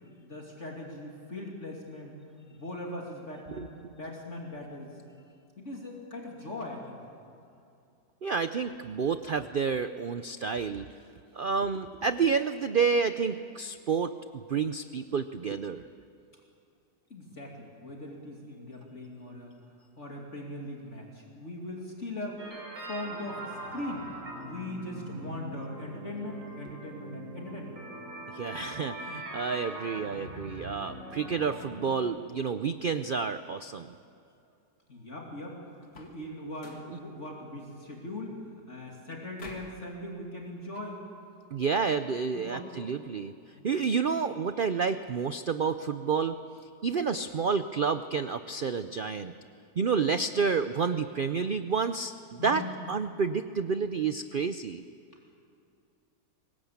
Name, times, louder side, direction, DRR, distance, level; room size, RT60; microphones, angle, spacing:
voice 1, 0.2-2.1 2.5-5.0 5.6-7.0 17.1-19.5 20.0-22.5 22.8-24.1 24.4-27.8 29.1-29.4 34.9-41.1 42.3-42.7 43.5-43.7 46.9-47.0 52.4-52.9, left 1 dB, 45° left, -1 dB, 3.0 m, -40 dB
voice 2, 8.2-10.9 11.3-14.1 14.5-15.8 28.3-34.0 41.5-43.3 43.6-46.4 46.8-49.3 49.8-54.8, right 5 dB, 70° right, 10 dB, 0.5 m, -29 dB
sound 1, 22.4-32.0, right 1 dB, 50° right, 4.1 m, -42 dB
sound 2, 35.8-36.3 36.6-37.0 39.4-39.8, left 3 dB, 80° left, 2.8 m, -48 dB
23.5 x 20.5 x 8.6 m, 2.6 s
omnidirectional pair, 1.8 m